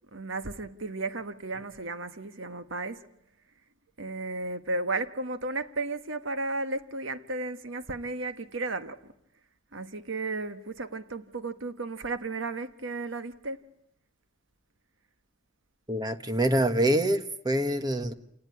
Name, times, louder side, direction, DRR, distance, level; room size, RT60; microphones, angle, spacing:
voice 1, 0.1-3.1 4.0-9.1 9.7-13.6, right 3 dB, 90° right, 1.3 m, -34 dB
voice 2, 15.9-18.1, right 1 dB, 20° right, 1.4 m, -25 dB
28.5 x 19.0 x 9.6 m
head